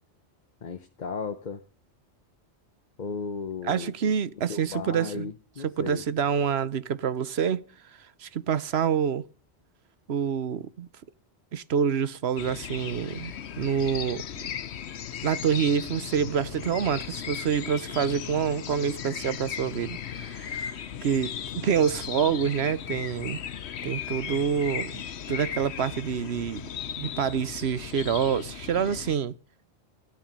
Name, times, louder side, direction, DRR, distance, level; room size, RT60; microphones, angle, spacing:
voice 1, 0.6-1.6 3.0-3.9 4.5-6.0, left 5 dB, 45° left, 1.0 m, -35 dB
voice 2, 3.6-5.3 5.6-7.6 8.2-9.2 10.1-10.9 11.5-14.5 15.2-20.7 21.0-23.4 23.8-25.0 25.3-26.6 27.0-29.3, right 7 dB, 70° right, 1.1 m, -27 dB
sound 1, 12.4-29.2, left 8 dB, 75° left, 1.1 m, -37 dB
15.0 x 10.5 x 5.4 m
omnidirectional pair, 1.1 m